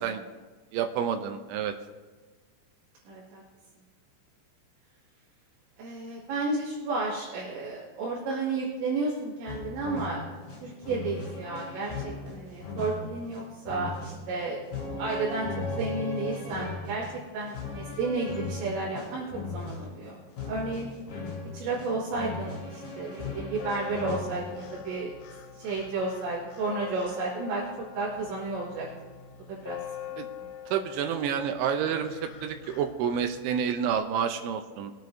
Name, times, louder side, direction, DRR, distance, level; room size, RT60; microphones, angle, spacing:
voice 1, 0.7-1.8 30.2-30.3 30.7-34.9, right 8 dB, 85° right, 7 dB, 2.7 m, -29 dB
voice 2, 3.1-3.4 5.8-10.2 10.6-14.6 15.0-17.0 17.3-19.3 19.5-20.2 20.5-20.9 21.5-25.1 25.6-27.6 27.9-28.9 29.5-29.8 30.4-30.5, right 3 dB, 65° right, -7 dB, 4.3 m, -32 dB
sound 1, 9.5-24.9, left 3 dB, 50° left, 4.6 m, -38 dB
sound 2, 23.5-34.0, left 9 dB, 85° left, 3.6 m, -44 dB
22.5 x 9.1 x 2.7 m, 1.4 s
omnidirectional pair, 5.7 m